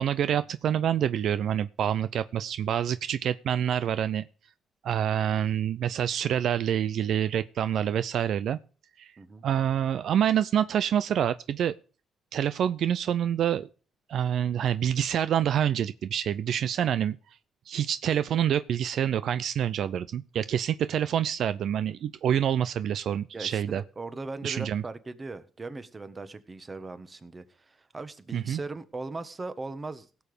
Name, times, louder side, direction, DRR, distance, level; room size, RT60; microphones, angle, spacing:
voice 1, 0.0-4.2 4.8-8.6 9.0-9.1 9.4-11.7 12.3-13.7 14.1-17.2 17.7-23.8 24.4-24.8 28.3-28.6, right 9 dB, 70° right, 0.5 m, -27 dB
voice 2, 23.3-30.1, right 3 dB, 25° right, 1.5 m, -39 dB
17.0 x 7.1 x 5.1 m
cardioid pair, 90°, 0 cm